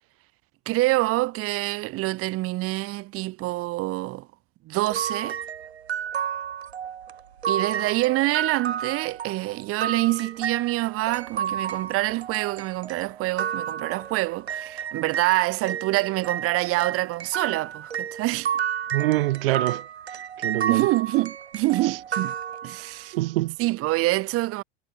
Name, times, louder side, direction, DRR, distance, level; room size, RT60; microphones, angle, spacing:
voice 1, 0.7-4.3 4.7-5.4 7.5-18.5 20.7-22.3 22.6-23.1 23.6-24.6, right 19 dB, 45° right, 2.6 m, -26 dB
sound 1, 4.9-15.3 15.7-23.0, right 8 dB, 85° right, 6.0 m, -31 dB
voice 2, 18.9-19.8 20.4-20.9 21.8-22.0 23.0-23.6, right 18 dB, 65° right, 1.1 m, -25 dB
hypercardioid pair, 90°, 31 cm